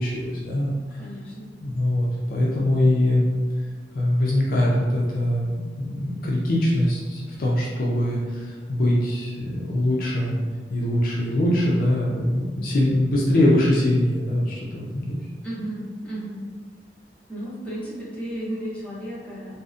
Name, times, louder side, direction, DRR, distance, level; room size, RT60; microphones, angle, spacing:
voice 1, 0.0-1.0 1.6-3.2 3.9-10.3 10.7-15.2, left 1 dB, 55° left, -4 dB, 0.4 m, -22 dB
voice 2, 1.0-1.5 15.4-16.4 17.3-19.6, right 1 dB, 10° left, -9 dB, 0.6 m, -33 dB
2.6 x 2.0 x 2.4 m, 1.4 s
head